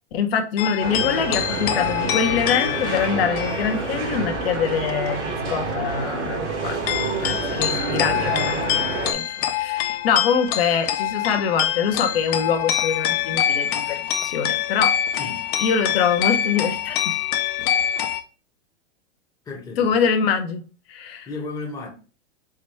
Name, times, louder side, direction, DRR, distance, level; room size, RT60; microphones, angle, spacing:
voice 1, 0.1-6.8 7.2-8.6 9.1-9.2 9.6-14.9 15.2-15.3 15.6-17.2 19.8-20.6 20.9-21.3, left 6 dB, 60° left, 0.9 m, -24 dB
sound 1, 0.6-5.2 5.5-6.3 6.8-18.2, left 11 dB, 35° left, 0.5 m, -25 dB
sound 2, 0.8-9.1, right 3 dB, 90° right, 1.6 m, -28 dB
voice 2, 7.5-8.3 15.2-15.5 19.5-20.0 21.3-21.9, left 3 dB, 10° left, 0.8 m, -35 dB
4.8 x 2.3 x 4.3 m
hypercardioid pair, 135°, 34 cm